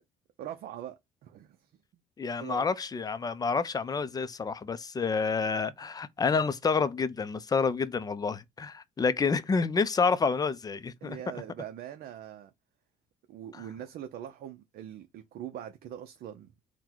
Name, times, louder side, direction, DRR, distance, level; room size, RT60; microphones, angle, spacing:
voice 1, 0.4-1.7 2.4-2.7 11.0-12.5 13.3-16.5, right 10 dB, 65° right, 0.6 m, -42 dB
voice 2, 2.2-11.2 13.5-13.6, left 5 dB, 25° left, 0.4 m, -29 dB
3.8 x 2.2 x 4.4 m
cardioid pair, 110°, 17 cm